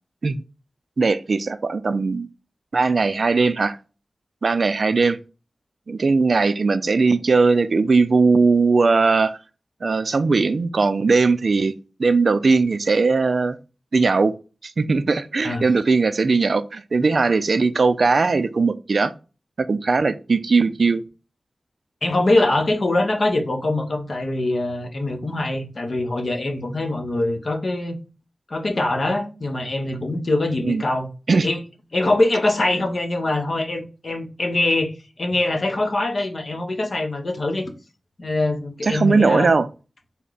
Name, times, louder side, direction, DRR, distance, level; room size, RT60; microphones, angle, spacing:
voice 1, 1.0-2.3 2.7-3.8 4.4-5.2 5.9-9.4 9.8-11.7 12.0-13.6 13.9-14.3 14.6-19.1 19.6-21.0 30.6-30.8 31.3-31.5 38.8-39.7, right 4 dB, 70° right, 0.3 m, -19 dB
voice 2, 22.0-28.0 28.5-31.1 31.4-31.6 31.9-34.9 35.2-37.7 38.2-39.5, left 2 dB, 65° left, 0.9 m, -23 dB
4.3 x 2.1 x 3.8 m
cardioid pair, 50°, 0 cm